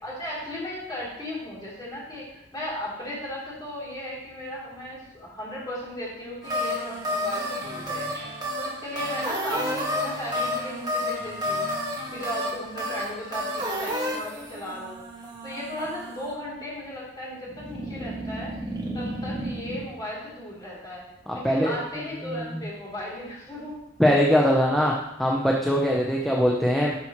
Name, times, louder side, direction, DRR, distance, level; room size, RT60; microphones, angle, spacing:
voice 1, 0.0-11.7 12.1-15.0 15.4-18.5 18.9-21.1 21.3-23.8, left 1 dB, 20° left, -7 dB, 3.2 m, -36 dB
sound 1, 6.4-16.3 17.5-19.8, equal, 25° right, 1.7 m, -31 dB
voice 2, 21.3-21.8 22.2-22.6 24.0-24.9 25.2-26.9, equal, ahead, -3 dB, 0.7 m, -22 dB
11.5 x 5.9 x 3.1 m, 0.87 s
head